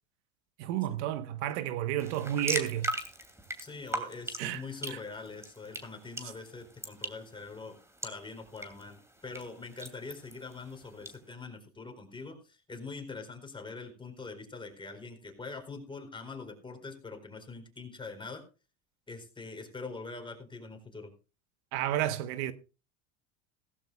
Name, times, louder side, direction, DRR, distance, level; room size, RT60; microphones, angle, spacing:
voice 1, 0.6-2.9 4.4-4.6 4.9-5.0 21.7-22.5, right 12 dB, 70° right, 1.1 m, -31 dB
sound 1, 2.0-11.1, right 1 dB, 10° right, 2.7 m, -40 dB
voice 2, 3.6-18.4 19.1-21.1, left 4 dB, 15° left, 4.4 m, -43 dB
17.0 x 15.5 x 2.3 m
supercardioid pair, 100°, 35 cm